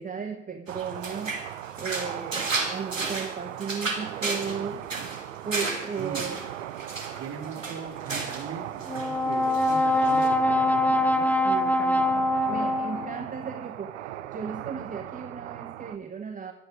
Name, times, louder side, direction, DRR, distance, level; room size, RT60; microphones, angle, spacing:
voice 1, 0.0-1.4 1.8-4.8 5.4-6.4 11.4-16.5, right 6 dB, 20° right, 5 dB, 1.3 m, -35 dB
sound 1, 0.7-16.0, right 13 dB, 65° right, 0.9 m, -39 dB
sound 2, 0.7-8.5 8.8-9.2 9.5-10.3, right 3 dB, 90° right, 2.1 m, -33 dB
voice 2, 4.7-5.1 6.0-6.4 7.1-11.3 12.9-13.1, right 5 dB, 35° right, 0 dB, 4.5 m, -39 dB
Brass instrument, 8.9-13.3, left 1 dB, 5° left, 1.2 m, -24 dB
24.5 x 9.1 x 5.1 m, 1.1 s
figure-of-eight pair, 65°, 38 cm